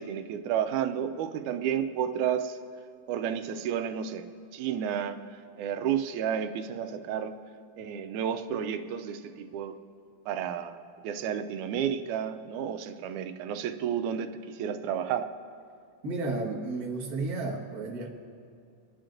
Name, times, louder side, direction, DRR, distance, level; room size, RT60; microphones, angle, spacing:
voice 1, 0.0-2.6 3.1-5.2 5.6-7.4 7.8-9.8 10.3-15.3, right 8 dB, 85° right, 8 dB, 2.0 m, -31 dB
voice 2, 16.0-18.1, right 3 dB, 50° right, -2 dB, 1.1 m, -32 dB
27.0 x 10.5 x 2.5 m, 2.4 s
omnidirectional pair, 3.4 m